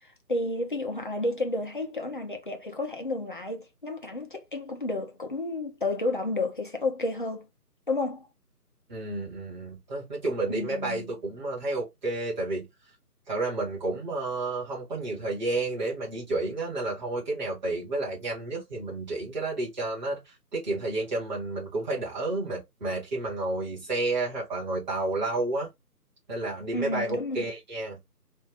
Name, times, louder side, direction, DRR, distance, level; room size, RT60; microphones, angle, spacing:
voice 1, 0.3-7.5 7.9-8.3 10.5-11.1 26.7-27.5, left 2 dB, 30° left, 0.7 m, -31 dB
voice 2, 8.9-12.7 13.3-20.2 20.5-25.7 26.3-28.0, right 2 dB, 30° right, 2.2 m, -31 dB
4.3 x 2.7 x 3.3 m
figure-of-eight pair, 160°, 48 cm